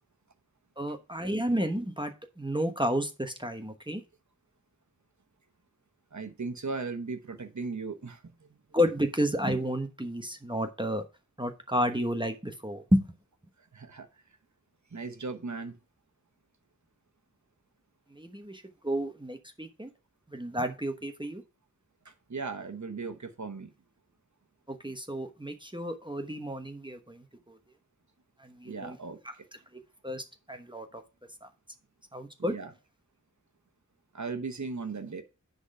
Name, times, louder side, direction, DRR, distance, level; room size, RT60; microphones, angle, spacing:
voice 1, 0.8-4.0 8.7-11.0 11.4-13.1 18.1-19.9 20.3-21.4 24.7-27.6 28.4-29.0 30.0-31.0 31.4-31.5 32.1-32.5, equal, 15° right, 1.1 m, -31 dB
voice 2, 6.1-8.6 13.7-14.1 14.9-15.8 22.0-23.7 28.6-29.2 32.4-32.7 34.1-35.2, right 4 dB, 70° right, 1.1 m, -37 dB
10.0 x 4.1 x 5.5 m
wide cardioid pair, 45°, 30 cm